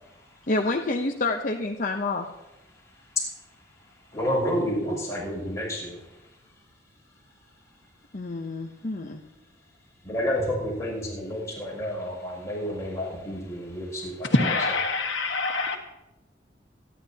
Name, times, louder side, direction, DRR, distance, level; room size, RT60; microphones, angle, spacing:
voice 1, 0.5-2.3 8.1-9.2, left 2 dB, 45° left, 1 dB, 0.8 m, -28 dB
voice 2, 4.1-6.0 10.0-14.4, equal, 15° left, -4 dB, 6.2 m, -30 dB
voice 3, 14.3-15.8, left 3 dB, 80° left, 2 dB, 1.6 m, -24 dB
25.5 x 11.0 x 2.9 m, 1.0 s
head